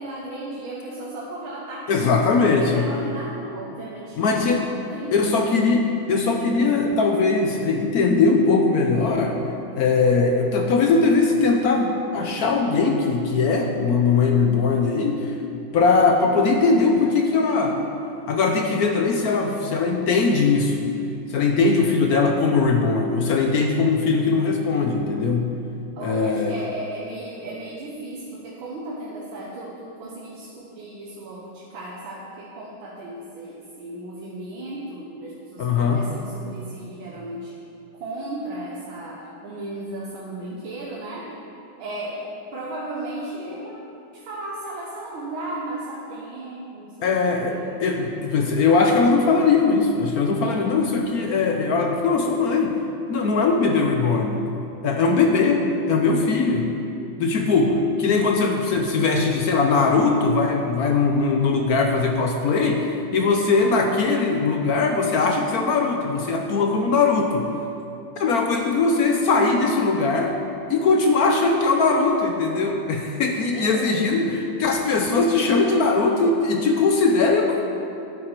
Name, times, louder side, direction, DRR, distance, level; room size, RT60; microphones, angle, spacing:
voice 1, 0.0-5.3 26.0-37.5 37.9-41.4 41.8-43.8 44.1-47.8 50.4-50.7 73.5-73.9 75.4-75.9, right 1 dB, 80° right, -5 dB, 1.9 m, -35 dB
voice 2, 1.9-2.9 4.2-4.6 5.1-9.4 9.7-15.3 15.7-17.8 18.3-20.9 21.3-25.5 26.0-26.6 35.6-36.0 47.0-52.8 53.1-54.5 54.8-56.7 57.2-67.5 68.2-70.4 70.7-77.6, left 4 dB, 65° left, 3 dB, 1.0 m, -20 dB
11.0 x 8.9 x 4.5 m, 2.7 s
omnidirectional pair, 2.2 m